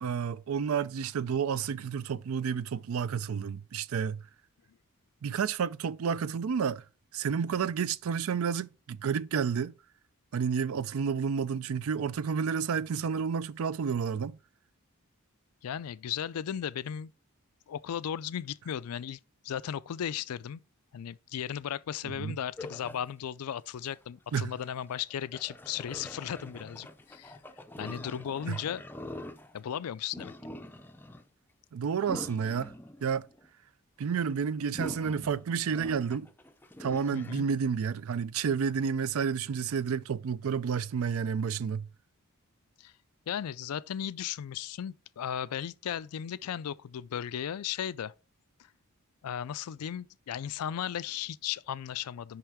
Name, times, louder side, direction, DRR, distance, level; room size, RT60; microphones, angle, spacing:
voice 1, 0.0-4.2 5.2-6.8 7.1-9.7 10.3-14.4 22.0-22.4 24.3-24.5 28.5-28.6 31.7-32.7 33.0-33.2 34.0-36.3 36.8-41.9, right 6 dB, 70° right, 0.4 m, -30 dB
voice 2, 15.6-17.1 17.7-20.6 20.9-27.4 27.8-28.8 29.5-30.3 37.1-37.5 42.8-42.9 43.3-48.1 49.2-52.4, left 9 dB, 85° left, 0.4 m, -36 dB
sound 1, 22.6-23.1 23.9-24.0 24.6-29.8 30.1-31.2 32.0-33.4 34.7-37.4, left 1 dB, 10° left, 0.4 m, -44 dB
5.8 x 5.5 x 3.6 m
head